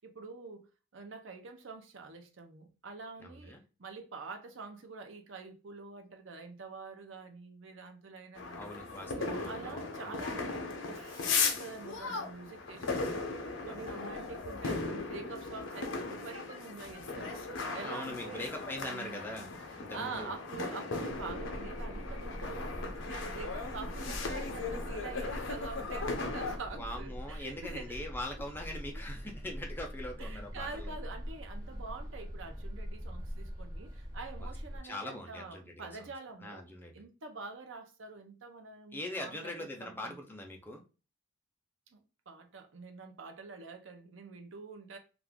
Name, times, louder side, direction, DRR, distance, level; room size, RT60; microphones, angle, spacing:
voice 1, 0.0-3.5 3.8-8.7 9.2-10.5 10.9-18.5 18.8-19.5 19.9-22.7 23.1-28.1 30.2-36.6 36.9-40.2 41.9-45.0, right 4 dB, 70° right, 0.7 m, -46 dB
voice 2, 3.2-3.6 8.5-10.3 17.8-20.3 26.7-31.0 34.4-34.5 34.8-35.9 36.4-37.0 38.9-40.8, left 1 dB, 10° left, 0.5 m, -42 dB
sound 1, 8.3-26.6, left 4 dB, 70° left, 0.6 m, -37 dB
sound 2, 21.1-34.8, equal, 20° right, 0.9 m, -42 dB
2.4 x 2.3 x 3.5 m
head